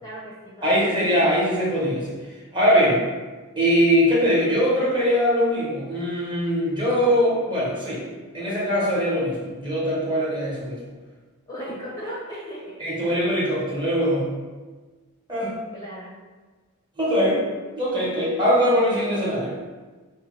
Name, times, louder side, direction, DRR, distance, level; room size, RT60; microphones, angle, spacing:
voice 1, 0.0-0.7 11.5-12.8 15.7-16.1, equal, 15° left, -6 dB, 0.6 m, -36 dB
voice 2, 0.6-2.1 2.5-3.0 3.6-8.0 8.3-10.8 12.8-14.3 15.3-15.6 17.0-17.4 17.8-19.5, equal, 20° right, -6 dB, 1.0 m, -21 dB
4.9 x 2.2 x 3.1 m, 1.3 s
head